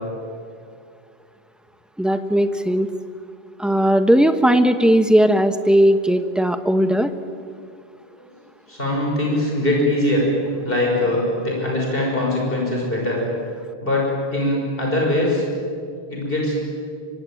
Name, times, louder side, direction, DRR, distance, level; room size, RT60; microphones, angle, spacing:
voice 1, 2.0-2.9 3.6-7.1, equal, ahead, 8 dB, 1.2 m, -17 dB
voice 2, 8.7-10.3 10.6-13.2 13.8-15.5 16.1-16.6, left 1 dB, 60° left, -2 dB, 6.4 m, -22 dB
24.0 x 24.0 x 9.3 m, 2.2 s
omnidirectional pair, 1.1 m